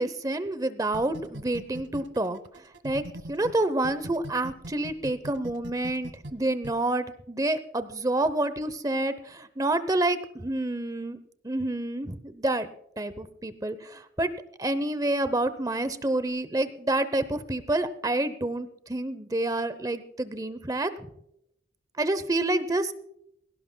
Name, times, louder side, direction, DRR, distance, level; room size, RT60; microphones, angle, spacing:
voice 1, 0.0-2.4 2.8-3.0 3.3-11.2 11.4-12.7 13.0-14.3 14.6-20.9 22.0-22.9, right 2 dB, 20° right, 13 dB, 0.7 m, -28 dB
sound 1, 0.9-3.5 3.8-6.7, right 1 dB, 80° right, 1.4 m, -39 dB
21.5 x 17.5 x 2.2 m, 0.76 s
head